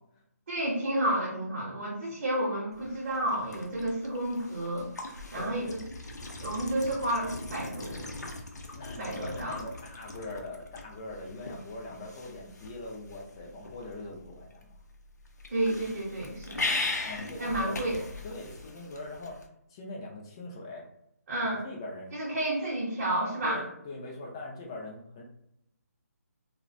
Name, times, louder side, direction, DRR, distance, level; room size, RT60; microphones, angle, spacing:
voice 1, 0.5-4.9 5.3-5.8 6.4-8.1 9.0-9.6 15.5-16.7 17.4-18.0 21.3-21.6 22.1-23.6, right 1 dB, 50° right, -5 dB, 0.7 m, -31 dB
sound 1, 2.7-19.5, left 2 dB, 85° left, 0.5 m, -40 dB
voice 2, 8.7-14.7 17.0-17.8 18.2-19.4 19.7-20.8 21.6-22.1 23.4-25.2, left 2 dB, 20° left, -2 dB, 0.3 m, -41 dB
2.3 x 2.1 x 2.5 m, 0.79 s
figure-of-eight pair, 160°, 9 cm